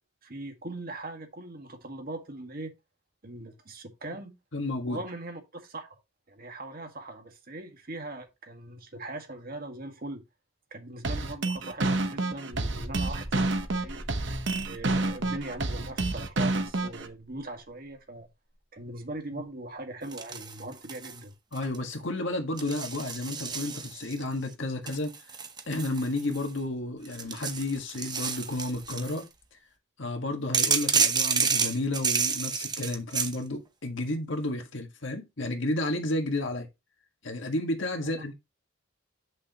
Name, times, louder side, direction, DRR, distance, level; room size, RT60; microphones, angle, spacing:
voice 1, 0.2-2.7 3.2-4.4 4.9-6.0 6.3-10.2 10.7-14.3 14.7-18.3 18.7-21.3, right 2 dB, 50° right, 1.8 m, -40 dB
voice 2, 4.5-5.0 21.5-25.1 25.7-29.3 30.0-36.7 37.2-38.3, left 2 dB, 65° left, 1.7 m, -32 dB
sound 1, 11.0-17.1, right 2 dB, 65° right, 1.0 m, -28 dB
sound 2, 12.5-18.0 18.3-18.4 18.9-19.0, equal, ahead, 4.9 m, -44 dB
sound 3, 20.1-21.2 21.5-21.9 22.6-24.2 24.9-26.6 27.1-29.2 30.5-33.4, right 5 dB, 20° right, 0.9 m, -29 dB
8.3 x 6.2 x 3.0 m
head